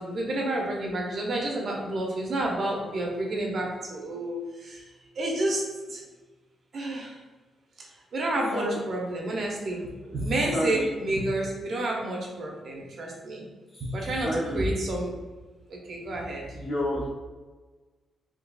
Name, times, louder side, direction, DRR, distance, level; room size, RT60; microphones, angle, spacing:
voice 1, 0.0-4.9 5.1-6.0 6.7-7.2 7.8-13.5 13.8-15.1 15.7-16.6, right 1 dB, 45° right, -1 dB, 0.7 m, -30 dB
voice 2, 10.5-10.9 13.7-13.8 14.2-14.6 16.5-17.1, equal, 45° left, -8 dB, 0.8 m, -29 dB
3.9 x 2.9 x 2.3 m, 1.3 s
wide cardioid pair, 170°, 0 cm